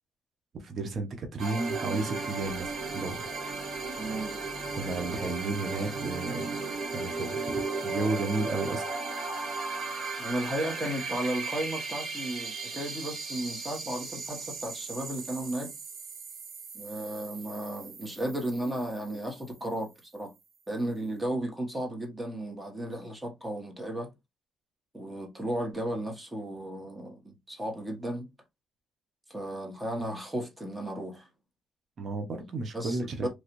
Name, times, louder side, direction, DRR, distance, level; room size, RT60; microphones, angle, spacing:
voice 1, 0.6-3.3 4.8-6.5 6.9-8.8 32.0-33.3, right 3 dB, 55° right, 0.8 m, -33 dB
sound 1, 1.4-19.9, right 3 dB, 70° right, 1.1 m, -36 dB
voice 2, 4.0-4.4 10.2-15.7 16.7-20.3 20.7-24.1 24.9-28.3 29.3-31.3 32.7-33.3, right 1 dB, 15° right, 1.2 m, -34 dB
3.1 x 2.5 x 3.0 m
cardioid pair, 90°, 0 cm